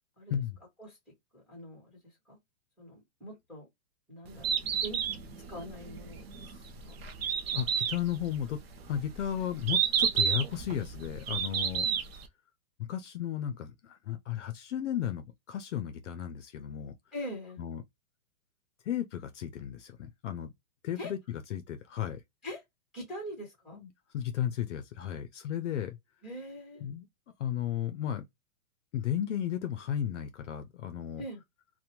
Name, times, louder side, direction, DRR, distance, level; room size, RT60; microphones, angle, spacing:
voice 1, 1.3-2.0 2.3-2.4 2.8-3.7 4.1-4.5 4.8-5.0 5.5-7.0 11.8-12.0 17.1-17.6 21.0-21.1 22.4-22.6 22.9-23.8 26.2-26.9 31.2-31.4, equal, ahead, 1.1 m, -43 dB
Bird, 4.3-12.3, right 8 dB, 45° right, 0.5 m, -31 dB
voice 2, 7.4-8.6 8.9-11.9 12.8-16.9 17.6-17.8 18.8-20.5 20.8-22.2 23.7-26.0 26.8-27.1 27.4-28.2 28.9-31.2, left 10 dB, 60° left, 0.5 m, -34 dB
2.5 x 2.2 x 2.8 m
hypercardioid pair, 165°, 42 cm